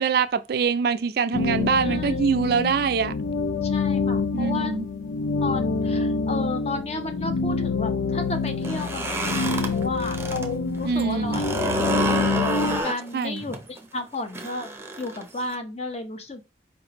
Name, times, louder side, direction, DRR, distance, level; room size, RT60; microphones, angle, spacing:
voice 1, 0.0-3.1 4.3-4.9 10.8-11.4 13.1-13.4, right 5 dB, 55° right, 0.3 m, -24 dB
sound 1, 1.3-12.8, left 4 dB, 90° left, 0.4 m, -26 dB
voice 2, 1.8-2.4 3.6-4.7 5.4-11.4 11.8-12.3 12.8-14.7 15.0-16.4, left 3 dB, 35° left, 0.7 m, -33 dB
sound 2, 8.5-10.5 10.8-15.5, right 2 dB, 15° right, 0.6 m, -29 dB
4.8 x 3.2 x 2.9 m
head